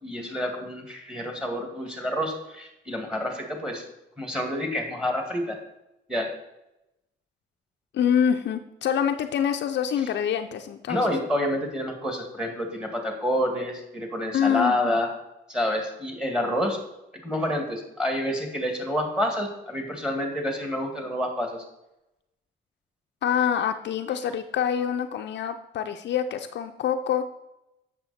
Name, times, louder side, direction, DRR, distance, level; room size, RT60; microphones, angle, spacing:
voice 1, 0.0-3.8 4.2-5.6 6.1-6.3 10.9-15.1 15.5-16.8 17.2-21.6, left 1 dB, 5° right, 3 dB, 2.1 m, -28 dB
voice 2, 7.9-11.1 14.3-15.0 23.2-27.2, left 8 dB, 60° left, 7 dB, 0.5 m, -26 dB
7.9 x 6.5 x 4.2 m, 0.89 s
cardioid pair, 90°, 20 cm